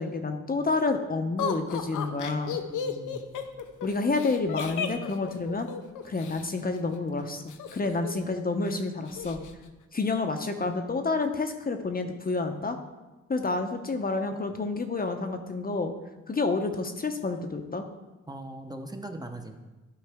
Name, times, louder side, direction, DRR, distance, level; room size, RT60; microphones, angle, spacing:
voice 1, 0.0-2.6 3.8-5.7 6.0-9.4 9.9-12.8 13.3-15.9 16.3-17.8, left 3 dB, 30° left, 6 dB, 0.7 m, -29 dB
Laughter, 1.4-6.4 7.5-8.3 8.6-8.7 9.1-9.5, left 7 dB, 90° left, 0.7 m, -34 dB
voice 2, 2.7-3.3 18.3-19.6, right 1 dB, 15° right, 4 dB, 0.7 m, -40 dB
12.5 x 4.6 x 3.5 m, 1.2 s
cardioid pair, 85°, 30 cm